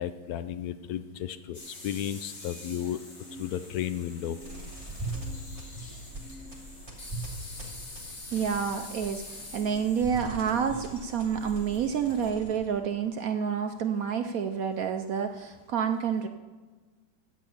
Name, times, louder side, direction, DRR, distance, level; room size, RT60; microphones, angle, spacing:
voice 1, 0.0-3.0 3.4-4.4, left 10 dB, 85° left, 12 dB, 0.8 m, -33 dB
sound 1, 1.5-12.3, left 2 dB, 35° left, 2.1 m, -46 dB
sound 2, 4.4-12.8, right 2 dB, 15° right, 2.5 m, -41 dB
voice 2, 8.3-16.3, right 7 dB, 75° right, 7 dB, 0.8 m, -29 dB
12.5 x 6.4 x 8.6 m, 1.4 s
omnidirectional pair, 2.2 m